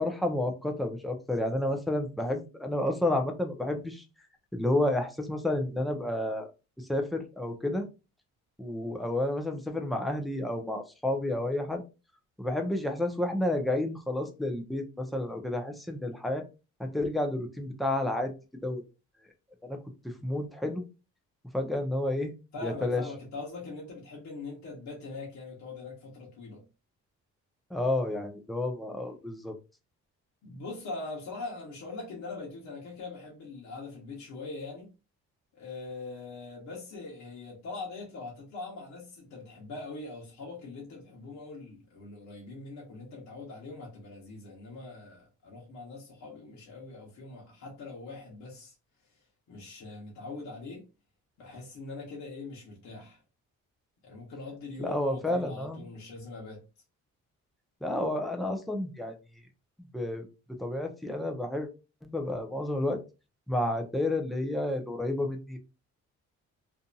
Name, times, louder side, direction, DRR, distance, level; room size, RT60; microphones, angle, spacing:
voice 1, 0.0-4.0 4.5-6.5 6.9-7.9 8.6-11.8 12.4-16.4 16.8-18.3 18.6-18.8 19.6-19.8 20.2-20.8 21.5-22.3 22.6-23.0 27.7-29.5 54.8-55.9 57.8-59.2 59.9-60.3 60.6-61.7 62.0-63.0 63.5-65.6, left 1 dB, ahead, 0.5 m, -30 dB
voice 2, 22.5-26.6 30.4-34.9 35.5-48.7 49.5-50.8 51.4-53.2 54.0-56.6, left 3 dB, 65° left, 1.1 m, -42 dB
2.7 x 2.6 x 2.2 m
cardioid pair, 90°, 30 cm